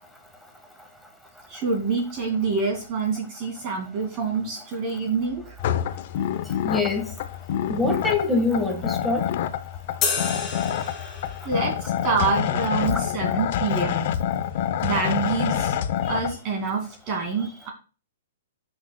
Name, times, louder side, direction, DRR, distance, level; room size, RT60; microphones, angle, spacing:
voice 1, 1.5-5.6 11.4-14.1 14.8-17.7, right 4 dB, 35° right, 2.3 m, -27 dB
sound 1, 5.6-16.3, left 9 dB, 50° left, 0.7 m, -27 dB
voice 2, 6.6-7.1 7.7-9.3 12.9-13.0 13.7-14.1, left 3 dB, ahead, 1.6 m, -25 dB
sound 2, 10.0-11.6, left 5 dB, 15° left, 2.6 m, -29 dB
10.5 x 6.4 x 2.3 m
hypercardioid pair, 145°, 0 cm